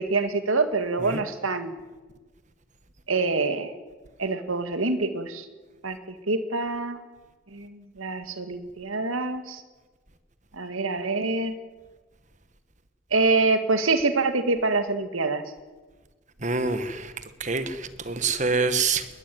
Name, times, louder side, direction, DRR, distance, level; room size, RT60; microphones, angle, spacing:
voice 1, 0.0-1.8 3.1-3.7 4.2-5.5 5.8-6.0 6.3-7.0 7.5-9.6 10.5-11.5 13.1-15.4, right 3 dB, 85° right, 9 dB, 2.1 m, -25 dB
voice 2, 16.4-17.1 17.4-19.0, right 4 dB, 35° right, 11 dB, 1.5 m, -26 dB
21.0 x 20.5 x 9.3 m, 1.3 s
head